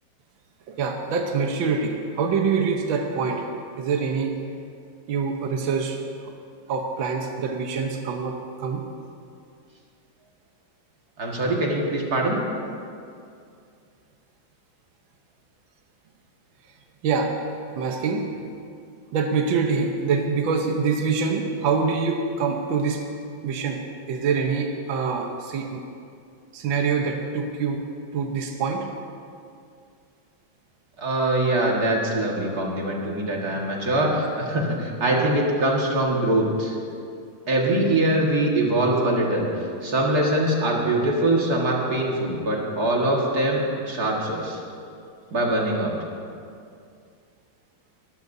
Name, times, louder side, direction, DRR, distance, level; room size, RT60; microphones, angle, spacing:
voice 1, 0.7-3.5 3.8-4.4 5.1-6.3 6.7-8.9 17.0-17.4 17.8-18.3 19.1-23.1 23.4-25.8 26.5-27.8 28.1-28.9, right 5 dB, 75° right, 3 dB, 1.7 m, -25 dB
voice 2, 11.2-12.4 31.0-36.8 37.5-44.6 45.3-46.0, right 1 dB, 50° right, -2 dB, 2.3 m, -23 dB
21.0 x 14.5 x 2.7 m, 2.4 s
omnidirectional pair, 2.2 m